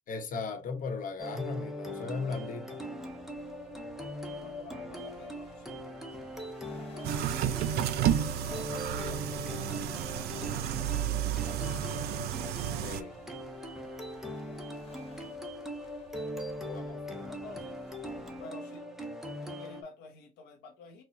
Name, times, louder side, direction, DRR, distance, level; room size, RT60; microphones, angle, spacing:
voice 1, 0.1-2.8 12.8-13.2 16.6-16.8, left 4 dB, 50° left, 1.0 m, -37 dB
sound 1, 1.2-19.8, equal, ahead, 0.7 m, -40 dB
sound 2, 3.0-18.4, left 2 dB, 35° left, 1.2 m, -58 dB
voice 2, 4.4-7.3 8.3-11.8 15.0-15.3 16.6-17.8 18.4-18.8 19.3-21.0, left 4 dB, 85° left, 0.8 m, -51 dB
sound 3, 7.0-13.0, right 11 dB, 70° right, 0.4 m, -31 dB
4.2 x 2.3 x 2.8 m
cardioid pair, 110°, 17 cm